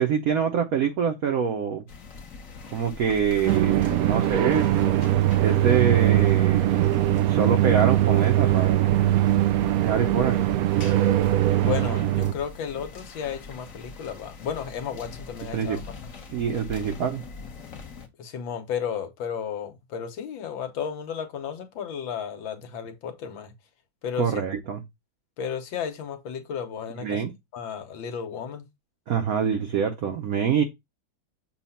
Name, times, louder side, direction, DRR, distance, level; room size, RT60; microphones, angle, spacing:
voice 1, 0.0-1.8 2.7-4.8 5.4-7.0 7.3-9.2 9.8-10.4 15.5-15.8 16.3-17.2 24.2-24.8 27.0-27.3 29.1-30.6, right 7 dB, 60° right, 1.1 m, -25 dB
sound 1, 1.9-18.1, left 5 dB, 50° left, 1.3 m, -43 dB
sound 2, 3.5-12.3, right 13 dB, 90° right, 0.8 m, -21 dB
voice 2, 11.5-15.8 18.2-23.5 24.0-24.3 25.4-27.2 27.5-28.6, left 7 dB, 85° left, 1.8 m, -33 dB
7.2 x 2.4 x 5.6 m
omnidirectional pair, 2.1 m